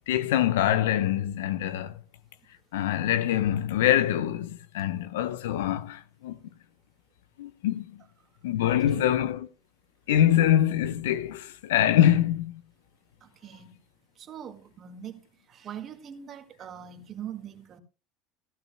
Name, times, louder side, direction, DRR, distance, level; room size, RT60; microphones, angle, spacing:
voice 1, 0.1-1.9 2.7-6.4 7.4-7.8 8.4-9.5 10.1-12.6, left 11 dB, 80° left, 0.8 m, -24 dB
voice 2, 8.6-9.1 13.2-13.8 14.2-15.2 15.5-17.8, right 9 dB, 45° right, 1.8 m, -42 dB
15.0 x 14.5 x 2.2 m
hypercardioid pair, 80°, 0 cm